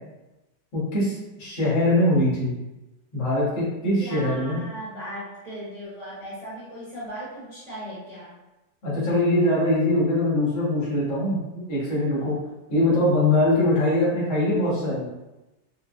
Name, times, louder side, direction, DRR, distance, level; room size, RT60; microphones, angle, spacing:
voice 1, 0.7-2.6 3.1-4.6 8.8-11.4 11.7-12.4 12.7-15.1, left 1 dB, 80° left, -9 dB, 2.5 m, -22 dB
voice 2, 4.0-8.3, equal, 30° right, -10 dB, 0.9 m, -37 dB
5.5 x 2.0 x 2.5 m, 1.0 s
omnidirectional pair, 2.1 m